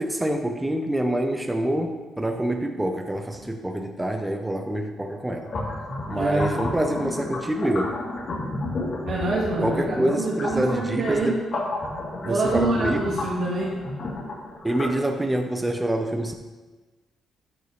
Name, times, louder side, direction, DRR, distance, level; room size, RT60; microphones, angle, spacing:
voice 1, 0.0-5.5 6.1-8.0 9.6-11.4 12.2-13.1 14.6-16.4, right 1 dB, 10° right, 4 dB, 0.7 m, -26 dB
sound 1, 5.4-15.0, left 2 dB, 50° left, 3.0 m, -32 dB
voice 2, 6.1-6.6 9.0-11.3 12.2-13.7, right 2 dB, 60° right, -4 dB, 1.7 m, -26 dB
12.5 x 5.5 x 3.2 m, 1.2 s
cardioid pair, 90°, 0 cm